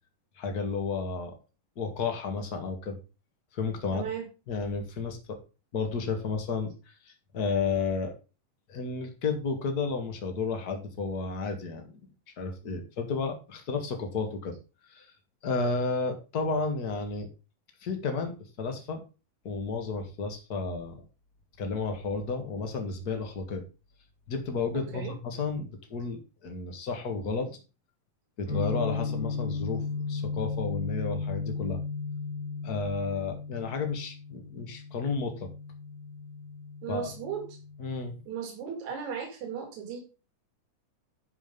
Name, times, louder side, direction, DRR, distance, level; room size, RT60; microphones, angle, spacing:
voice 1, 0.4-1.3 1.8-3.0 3.5-4.0 4.5-5.4 5.7-8.1 8.7-12.0 12.4-14.5 14.9-15.1 15.4-17.3 17.8-19.0 19.4-21.0 21.6-23.6 24.3-27.5 28.4-29.8 30.1-31.8 32.6-35.5 36.9-37.1 37.8-38.2, left 4 dB, 35° left, 5 dB, 1.8 m, -32 dB
voice 2, 3.9-4.3 24.7-25.1 36.8-37.4 38.3-40.0, right 7 dB, 60° right, 2 dB, 3.7 m, -36 dB
sound 1, 28.5-38.2, left 4 dB, 60° left, 4.9 m, -35 dB
11.5 x 5.1 x 5.3 m, 0.32 s
omnidirectional pair, 3.9 m